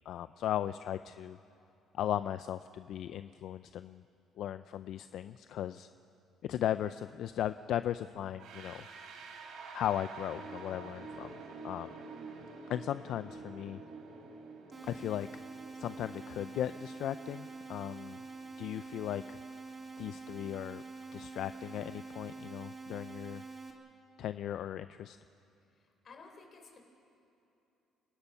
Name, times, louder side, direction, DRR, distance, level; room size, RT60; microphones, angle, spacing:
voice 1, 0.1-1.4 1.9-4.0 4.4-5.9 6.4-8.9 9.7-11.4 11.6-11.9 12.7-13.8 14.9-15.3 15.8-18.2 18.6-19.4 20.0-20.8 21.1-23.4 24.2-25.2, left 11 dB, 60° left, 12 dB, 0.4 m, -37 dB
sound 1, 8.4-19.3, right 4 dB, 80° right, 3.0 m, -49 dB
sound 2, 14.7-23.7, right 4 dB, 20° right, 2.1 m, -46 dB
voice 2, 26.0-26.8, left 4 dB, 35° left, 3 dB, 3.8 m, -53 dB
30.0 x 19.0 x 5.7 m, 2.8 s
cardioid pair, 145°, 0 cm